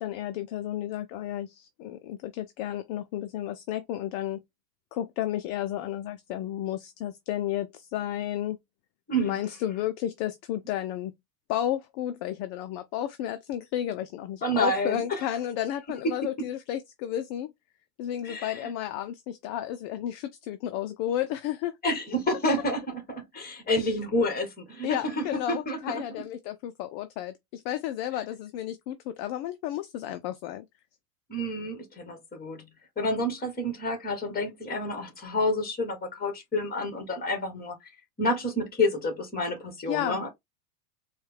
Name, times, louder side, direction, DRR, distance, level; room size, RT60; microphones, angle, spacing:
voice 1, 0.0-4.4 4.9-8.6 9.2-11.1 11.5-17.5 18.0-21.8 23.7-23.9 24.8-30.7 39.9-40.3, left 12 dB, 50° left, 0.6 m, -32 dB
voice 2, 14.4-15.2 18.2-18.7 21.8-26.0 31.3-32.6 33.0-37.8 38.2-40.3, left 1 dB, 20° left, 1.8 m, -29 dB
4.4 x 2.4 x 3.3 m
hypercardioid pair, 100°, 49 cm